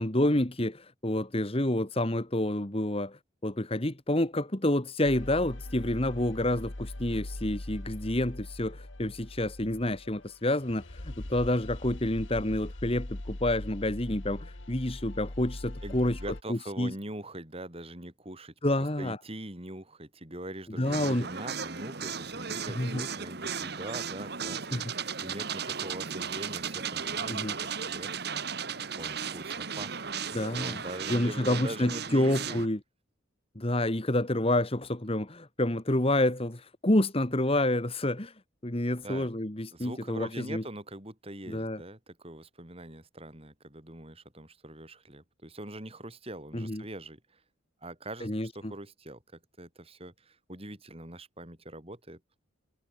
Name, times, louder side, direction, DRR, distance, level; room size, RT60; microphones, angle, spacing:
voice 1, 0.0-16.2 16.5-16.9 18.6-19.2 20.8-21.3 22.7-23.0 24.7-24.9 27.3-27.5 30.3-30.8 31.1-32.8 33.6-38.3 38.6-40.6 41.5-41.8 46.5-46.8 48.2-48.7, left 1 dB, 30° left, 1.9 m, -28 dB
sound 1, 5.0-16.4, left 1 dB, 75° left, 2.0 m, -41 dB
voice 2, 15.8-18.5 19.0-28.1 29.0-30.1 30.5-32.6 39.0-39.3 39.7-47.2 47.8-49.2 49.6-52.2, right 1 dB, 30° right, 6.9 m, -42 dB
sound 2, 20.8-32.7, right 6 dB, 55° right, 1.9 m, -36 dB
head